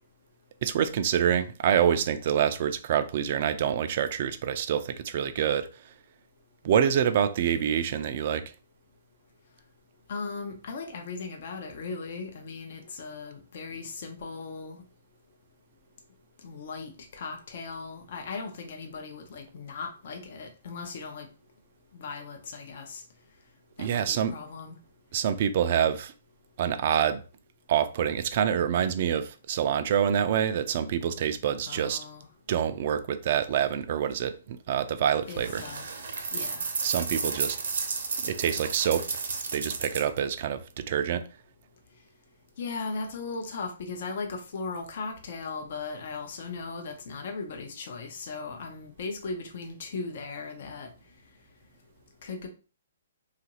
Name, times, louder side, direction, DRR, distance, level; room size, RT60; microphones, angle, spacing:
voice 1, 0.6-5.7 6.6-8.4 23.8-24.3 25.1-26.1 26.6-27.2 27.7-32.0 32.5-35.6 36.8-37.6 38.2-39.0 39.5-41.2, right 9 dB, 50° right, 0.4 m, -26 dB
voice 2, 10.1-14.8 16.4-21.3 21.9-23.0 23.8-24.7 31.6-32.3 35.3-35.9 36.3-36.7 42.6-50.9 52.2-52.5, left 4 dB, 60° left, 0.6 m, -38 dB
sound 1, 35.3-40.2, right 4 dB, 70° right, 0.7 m, -32 dB
2.9 x 2.5 x 2.9 m
hypercardioid pair, 140°, 0 cm